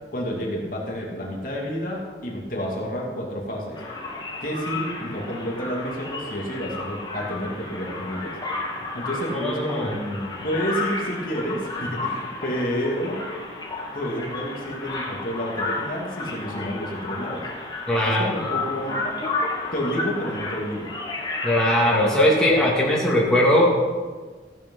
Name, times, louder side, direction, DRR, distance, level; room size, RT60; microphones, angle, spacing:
voice 1, 0.1-3.8 4.4-8.3 8.9-9.9 10.4-13.2 13.9-17.4 18.0-19.0 19.7-20.9, equal, 50° left, -2 dB, 2.5 m, -29 dB
sound 1, 3.7-22.5, left 3 dB, 25° left, 2.7 m, -32 dB
voice 2, 9.3-10.3 17.9-18.3 21.4-23.6, left 1 dB, 5° left, -5 dB, 2.5 m, -20 dB
15.5 x 8.9 x 5.5 m, 1.4 s
head